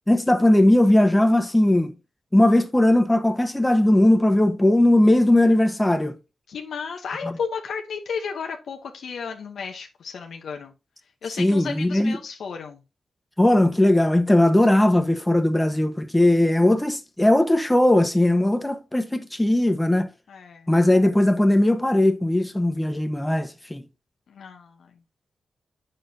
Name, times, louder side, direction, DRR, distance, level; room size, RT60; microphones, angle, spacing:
voice 1, 0.1-1.9 2.3-6.1 7.2-7.3 11.4-12.2 13.4-20.1 20.7-23.8, left 1 dB, 10° left, 1.2 m, -19 dB
voice 2, 6.5-10.7 11.2-12.8 20.3-20.7 24.3-24.9, left 6 dB, 75° left, 0.9 m, -33 dB
7.6 x 6.6 x 2.7 m
cardioid pair, 50°, 0 cm